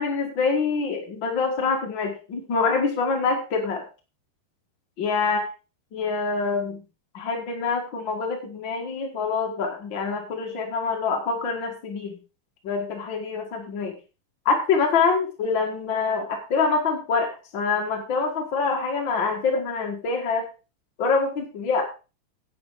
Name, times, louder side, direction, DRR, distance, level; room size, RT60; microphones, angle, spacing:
voice 1, 0.0-3.8 5.0-5.4 5.9-6.8 7.1-12.2 12.6-14.0 14.4-20.5 21.0-21.8, left 4 dB, 60° left, 2 dB, 1.2 m, -25 dB
9.6 x 8.7 x 4.7 m, 0.32 s
omnidirectional pair, 5.2 m